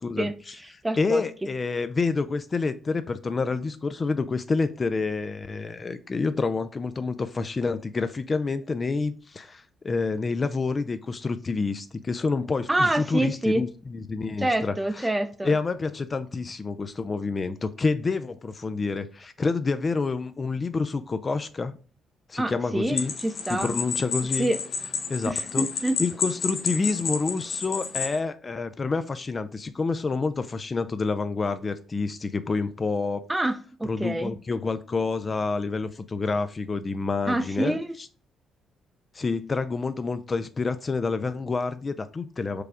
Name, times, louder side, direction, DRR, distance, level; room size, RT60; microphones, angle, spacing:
voice 1, 0.0-0.6 1.0-15.1 15.4-21.7 22.3-23.1 23.5-24.5 25.1-25.7 26.0-33.3 33.8-37.8 39.1-42.6, left 4 dB, 35° left, 11 dB, 0.4 m, -28 dB
voice 2, 0.8-1.2 12.7-13.6 14.4-15.5 22.4-23.7 24.4-24.6 25.2-26.0 33.3-34.3 37.3-37.9, right 1 dB, 15° right, 10 dB, 0.6 m, -26 dB
sound 1, 23.0-28.2, left 5 dB, 55° left, 0.8 m, -31 dB
4.8 x 2.3 x 4.9 m, 0.38 s
cardioid pair, 90°, 0 cm